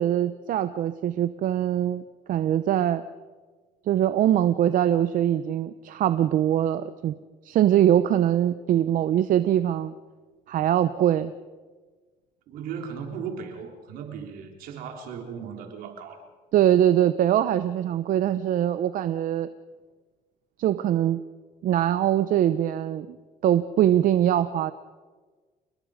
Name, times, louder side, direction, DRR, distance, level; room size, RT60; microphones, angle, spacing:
voice 1, 0.0-2.0 2.3-3.0 3.9-7.1 7.4-9.9 10.5-11.3 16.5-19.5 20.6-21.2 21.6-23.2 23.4-24.7, right 11 dB, 65° right, 12 dB, 0.8 m, -22 dB
voice 2, 12.5-16.2, right 6 dB, 85° right, 3 dB, 3.8 m, -37 dB
29.5 x 20.5 x 5.1 m, 1.4 s
cardioid pair, 100°, 15 cm